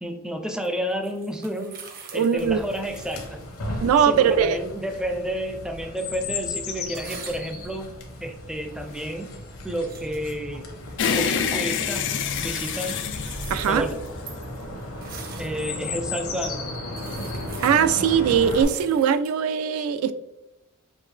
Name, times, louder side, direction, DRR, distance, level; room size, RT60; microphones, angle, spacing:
voice 1, 0.0-1.8 2.1-3.4 4.0-7.9 8.2-9.3 9.6-10.7 11.1-12.1 12.4-13.0 13.7-14.0 15.4-16.7, equal, 5° right, 5 dB, 0.4 m, -30 dB
sound 1, 0.6-3.3 3.6-3.7 6.9-7.8 8.6-9.2 9.7-10.2 12.2-15.9 16.5-16.6 16.9-19.4, right 5 dB, 45° right, 0.7 m, -44 dB
voice 2, 2.1-2.6 3.8-4.6 13.5-13.9 17.6-20.1, right 7 dB, 85° right, 11 dB, 0.3 m, -20 dB
Chirp tweet, 2.4-18.6, left 2 dB, 80° left, 0.9 m, -35 dB
sound 2, 11.0-14.5, left 7 dB, 60° left, 0.4 m, -27 dB
5.4 x 2.7 x 3.2 m, 0.96 s
head